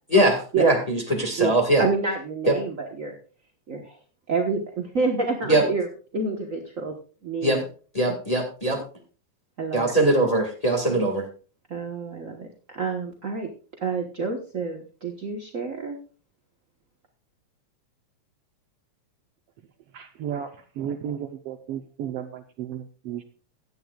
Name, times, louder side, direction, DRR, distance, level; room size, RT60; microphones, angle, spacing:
voice 1, 0.1-1.8 5.5-5.6 7.4-7.6 7.9-8.8 9.7-11.3, right 1 dB, 15° left, 2 dB, 1.4 m, -21 dB
voice 2, 1.4-3.1 3.7-4.0 4.3-7.0 7.2-7.7 8.1-8.2 9.6-9.9 10.9-11.0 11.7-13.5 13.8-16.0, right 4 dB, 55° right, 2 dB, 0.9 m, -28 dB
voice 3, 19.9-20.5 20.7-23.2, right 9 dB, 70° right, 6 dB, 1.5 m, -33 dB
16.5 x 11.0 x 2.4 m, 0.37 s
omnidirectional pair, 3.4 m